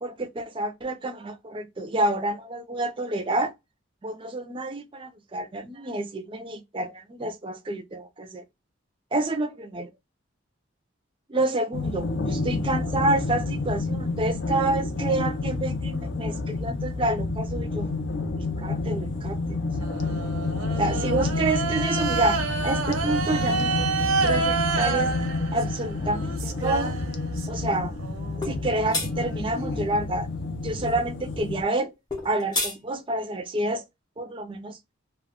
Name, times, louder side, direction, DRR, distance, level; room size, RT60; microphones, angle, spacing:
voice 1, 0.0-3.5 4.0-8.4 9.1-9.9 11.3-17.9 18.6-19.9 20.8-25.1 25.5-27.0 27.5-27.9 28.4-30.3 30.6-31.9 32.2-33.8 34.2-34.8, right 2 dB, 25° right, 0.4 m, -28 dB
sound 1, 11.7-31.6, left 3 dB, 60° left, 0.5 m, -29 dB
sound 2, 19.8-27.6 28.0-30.6, right 4 dB, 90° right, 0.6 m, -30 dB
sound 3, 28.4-28.6 28.9-29.1 32.1-32.8, left 2 dB, 20° left, 0.6 m, -27 dB
2.2 x 2.1 x 3.4 m
head